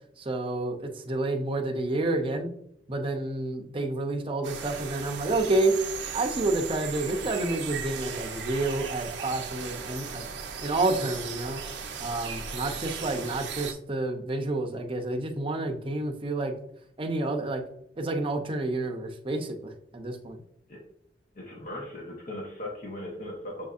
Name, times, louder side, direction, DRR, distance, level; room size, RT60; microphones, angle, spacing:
voice 1, 0.2-2.5 2.9-5.8 6.1-10.2 10.6-11.6 12.0-16.6 17.0-17.6 18.0-20.4, right 2 dB, 30° right, 3 dB, 0.6 m, -29 dB
sound 1, 4.4-13.7, right 6 dB, 80° right, 0.6 m, -37 dB
voice 2, 21.3-23.7, left 1 dB, 50° left, -2 dB, 0.8 m, -39 dB
7.0 x 2.6 x 2.4 m, 0.75 s
head